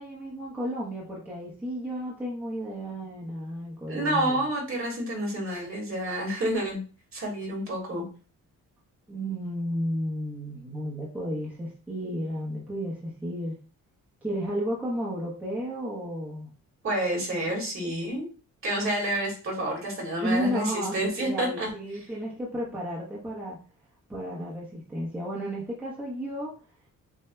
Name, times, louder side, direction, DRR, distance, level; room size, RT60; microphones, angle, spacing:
voice 1, 0.0-4.4 9.1-13.6 14.2-16.5 20.2-23.6 24.1-26.5, equal, 5° right, -5 dB, 1.0 m, -33 dB
voice 2, 3.9-6.8 7.1-8.1 16.8-18.3 18.6-21.7, right 1 dB, 40° right, -2 dB, 2.0 m, -29 dB
7.0 x 2.9 x 2.2 m, 0.37 s
wide cardioid pair, 170°, 33 cm